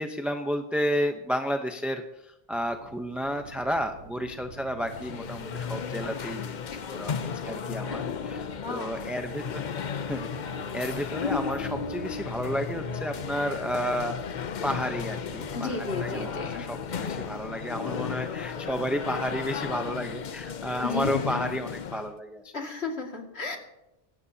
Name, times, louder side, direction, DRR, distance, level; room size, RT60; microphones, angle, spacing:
voice 1, 0.0-6.5 6.9-8.4 8.7-9.7 10.1-10.3 10.7-14.2 14.6-22.5, equal, ahead, 5 dB, 0.7 m, -32 dB
sound 1, 2.5-17.5, right 4 dB, 90° right, 1.4 m, -48 dB
sound 2, 4.8-22.1, left 6 dB, 50° left, 0.7 m, -34 dB
voice 2, 8.5-9.1 15.5-16.6 20.8-21.1 22.5-23.6, left 3 dB, 85° left, 1 dB, 2.5 m, -34 dB
19.5 x 17.0 x 2.9 m, 0.91 s
omnidirectional pair, 1.1 m